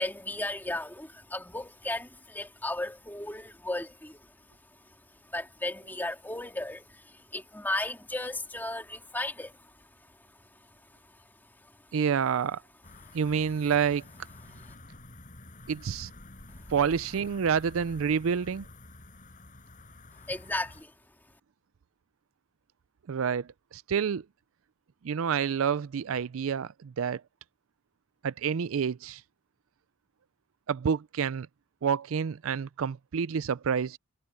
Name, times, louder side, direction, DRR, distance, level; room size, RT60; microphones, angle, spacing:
voice 1, 0.0-4.4 4.8-5.0 5.2-9.9 10.2-11.8 13.1-13.2 14.5-14.7 20.3-20.9, left 1 dB, 10° left, 2.7 m, -36 dB
voice 2, 11.9-12.6 13.1-14.0 15.7-16.1 16.7-18.6 23.1-24.2 25.0-27.2 28.2-29.2 30.7-31.5 31.8-34.0, right 7 dB, 70° right, 0.4 m, -28 dB
sound 1, 12.8-20.8, left 2 dB, 40° left, 7.1 m, -49 dB
head